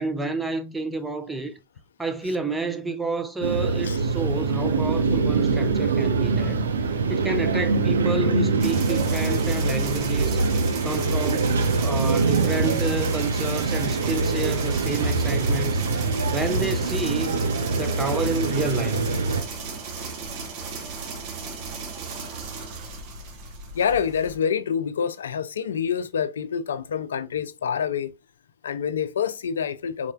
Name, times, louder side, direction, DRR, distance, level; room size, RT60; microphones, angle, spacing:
voice 1, 0.0-1.6 2.0-10.4 10.8-15.8 16.3-17.4 17.7-19.1, right 2 dB, 10° right, 0.5 m, -30 dB
sound 1, 3.4-19.4, right 4 dB, 70° right, 0.6 m, -24 dB
sound 2, 8.6-24.4, right 4 dB, 45° right, 1.0 m, -35 dB
voice 2, 23.7-28.1 28.6-30.1, left 7 dB, 65° left, 0.4 m, -27 dB
4.3 x 4.1 x 2.3 m
figure-of-eight pair, 90°, 0 cm